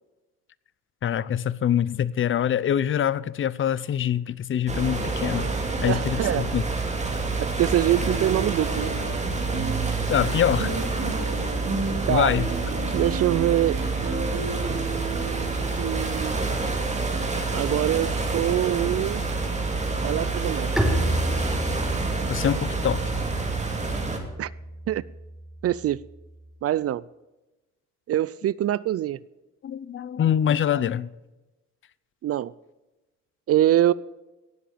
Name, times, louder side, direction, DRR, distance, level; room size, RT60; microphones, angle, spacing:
voice 1, 1.0-5.5 5.8-6.6 10.1-10.7 12.1-12.5 22.3-23.0 29.6-31.1, left 9 dB, 40° left, 0.6 m, -24 dB
sound 1, 4.7-24.2, right 3 dB, 25° right, 2.6 m, -28 dB
voice 2, 5.8-6.5 7.1-8.9 12.1-12.3 12.9-13.8 15.8-16.6 17.5-19.2 20.0-20.7 24.4-24.5 24.9-25.0 25.6-26.0 26.6-27.0 28.1-29.2 32.2-32.5 33.5-33.9, right 12 dB, 50° right, 0.4 m, -24 dB
sound 2, 7.9-15.8, right 4 dB, 80° right, 4.9 m, -33 dB
Bowed string instrument, 20.8-26.3, equal, ahead, 3.5 m, -31 dB
17.5 x 7.6 x 6.8 m
cardioid pair, 90°, 30 cm